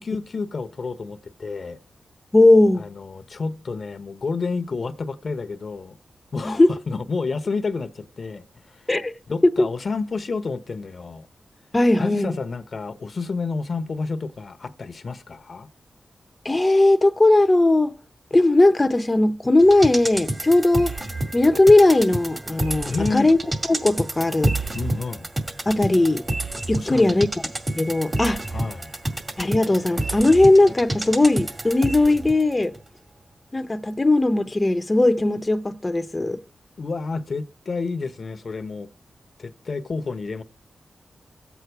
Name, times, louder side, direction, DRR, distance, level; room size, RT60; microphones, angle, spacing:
voice 1, 0.0-1.8 2.8-6.0 6.3-8.4 8.8-8.9 9.3-11.3 12.0-15.7 22.9-23.3 24.7-25.3 26.7-27.2 28.5-28.9 36.8-38.9 39.4-40.4, left 4 dB, 60° left, 1.0 m, -30 dB
voice 2, 2.3-2.9 6.4-6.7 8.9-9.1 9.4-9.7 11.7-12.4 16.4-17.9 18.3-20.9 21.3-23.4 23.7-24.5 25.7-26.2 26.7-27.3 27.8-28.4 29.4-32.7 33.5-36.4, left 2 dB, 30° left, 0.9 m, -18 dB
sound 1, 19.6-32.4 32.7-32.8, right 1 dB, 35° right, 2.1 m, -29 dB
24.5 x 8.3 x 4.6 m
cardioid pair, 50°, 0 cm